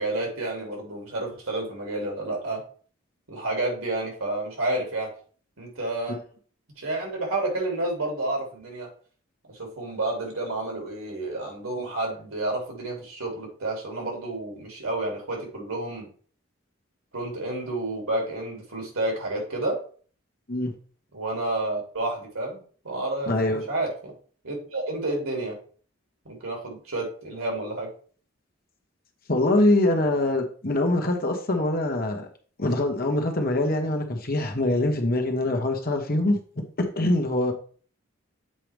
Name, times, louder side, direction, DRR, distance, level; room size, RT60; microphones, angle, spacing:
voice 1, 0.0-2.6 3.3-5.1 5.6-6.2 6.8-8.9 9.5-16.1 17.1-19.8 21.1-24.1 24.4-25.6 26.2-27.9, right 2 dB, 85° right, 0 dB, 2.8 m, -30 dB
voice 2, 23.3-23.6 29.3-32.3 32.6-36.4 36.8-37.5, left 1 dB, 45° left, 3 dB, 1.1 m, -24 dB
7.6 x 4.7 x 3.4 m, 0.43 s
head